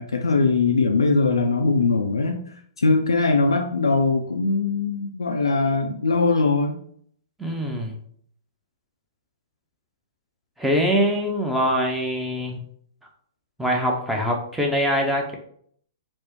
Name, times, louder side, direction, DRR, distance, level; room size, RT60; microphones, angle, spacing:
voice 1, 0.0-6.8, left 3 dB, 70° left, 4 dB, 0.3 m, -21 dB
voice 2, 7.4-8.0 10.6-12.6 13.6-15.4, equal, 5° right, 0 dB, 0.5 m, -23 dB
4.3 x 2.0 x 2.9 m, 0.63 s
figure-of-eight pair, 110°, 3 cm